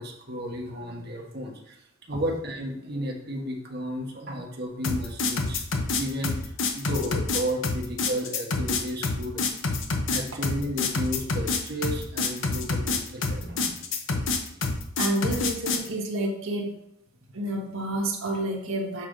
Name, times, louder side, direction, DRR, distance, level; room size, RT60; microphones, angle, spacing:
voice 1, 0.0-1.8 2.1-5.6 5.9-9.4 10.1-13.8, equal, 50° right, 0 dB, 1.3 m, -33 dB
sound 1, 4.8-15.9, left 3 dB, 60° left, 0.8 m, -27 dB
voice 2, 15.0-16.7 17.3-19.1, right 1 dB, 70° right, -1 dB, 1.5 m, -29 dB
7.3 x 5.0 x 3.8 m, 0.74 s
head